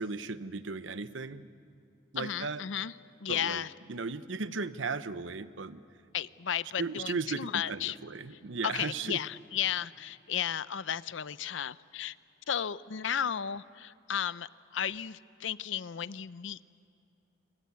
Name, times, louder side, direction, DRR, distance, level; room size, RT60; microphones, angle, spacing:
voice 1, 0.0-1.5 2.1-2.6 3.3-3.6 3.9-5.8 6.8-9.2, right 4 dB, 75° right, 13 dB, 0.9 m, -36 dB
voice 2, 2.2-2.9 3.2-3.7 6.1-8.0 8.6-12.2 12.5-16.6, left 9 dB, 70° left, 17 dB, 0.6 m, -34 dB
26.0 x 22.0 x 9.5 m, 2.5 s
head